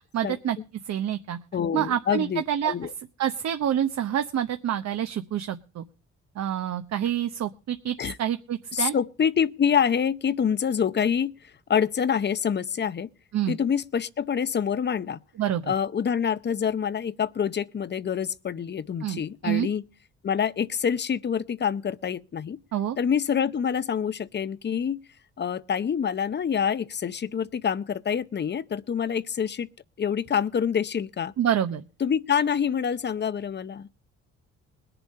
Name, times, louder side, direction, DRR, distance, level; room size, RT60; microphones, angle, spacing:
voice 1, 0.1-0.6 0.9-1.4 1.7-2.7 3.2-5.8 6.4-8.9 13.3-13.6 15.4-15.7 19.0-19.7 22.7-23.0 31.4-31.8, right 10 dB, 60° right, 0.9 m, -27 dB
voice 2, 1.5-2.9 8.0-8.2 8.7-11.3 11.7-13.1 13.5-15.2 15.7-19.8 20.2-22.6 23.0-25.0 25.4-29.7 30.0-31.3 32.0-33.9, left 7 dB, 35° left, 0.7 m, -26 dB
20.5 x 7.0 x 5.3 m
cardioid pair, 90°, 30 cm